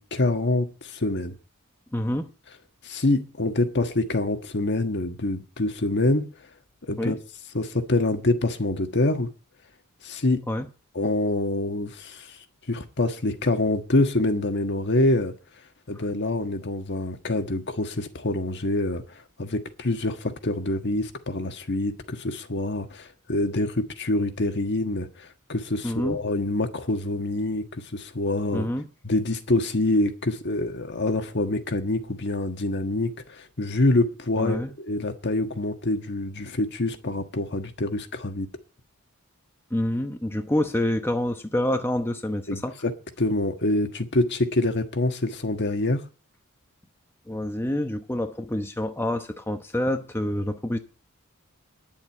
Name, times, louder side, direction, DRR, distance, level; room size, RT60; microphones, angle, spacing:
voice 1, 0.0-1.4 2.8-6.3 6.8-7.2 7.5-9.3 10.0-10.4 10.9-12.4 12.7-15.3 15.9-19.0 19.4-28.7 29.0-38.5 42.5-46.0, left 2 dB, 55° left, 1.5 m, -26 dB
voice 2, 1.9-2.3 7.0-7.2 10.5-10.7 25.8-26.2 28.5-28.9 34.4-34.7 39.7-42.7 47.3-50.8, left 1 dB, 10° left, 0.9 m, -27 dB
10.5 x 7.5 x 8.9 m
head